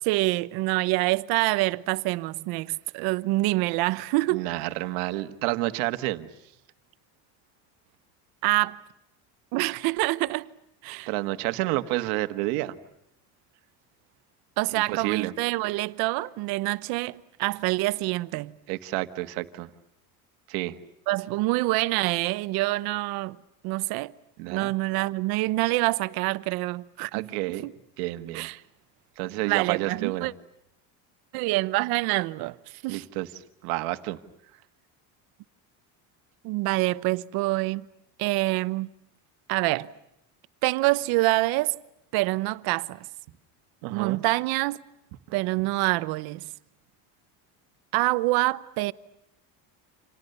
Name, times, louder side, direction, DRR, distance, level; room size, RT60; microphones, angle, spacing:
voice 1, 0.0-4.5 8.4-8.8 9.5-10.5 10.8-11.1 14.6-18.5 21.1-23.4 23.6-24.1 24.5-27.3 27.6-27.7 28.3-28.6 29.4-30.3 31.3-33.0 36.4-37.8 38.2-38.9 39.5-39.9 40.6-41.8 42.1-43.1 43.9-44.8 45.3-46.5 47.9-48.9, right 21 dB, 60° right, 1.0 m, -26 dB
voice 2, 4.3-6.3 11.1-12.8 14.7-15.3 18.7-19.7 20.5-20.8 24.4-24.7 27.1-27.7 28.0-28.5 29.2-30.3 32.9-33.3 33.6-34.2 43.8-44.2, right 18 dB, 85° right, 1.7 m, -29 dB
30.0 x 27.5 x 6.8 m
cardioid pair, 170°, 41 cm